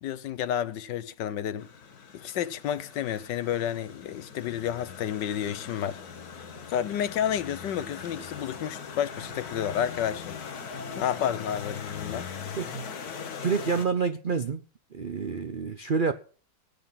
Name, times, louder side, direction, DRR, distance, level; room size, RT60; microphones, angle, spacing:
voice 1, 0.0-1.7 2.1-6.0 6.7-10.4 11.0-12.3, left 10 dB, 75° left, 1.4 m, -30 dB
sound 1, 1.6-13.9, left 6 dB, 55° left, 1.7 m, -40 dB
Speech, 6.5-6.7 7.1-7.4 7.8-7.9 8.3-8.9 9.3-9.5 9.8-10.2 10.5-11.6, right 1 dB, 10° left, 1.5 m, -49 dB
voice 2, 12.6-12.9 13.4-14.6 14.9-16.1, right 5 dB, 85° right, 0.4 m, -28 dB
17.5 x 8.6 x 5.7 m
omnidirectional pair, 2.0 m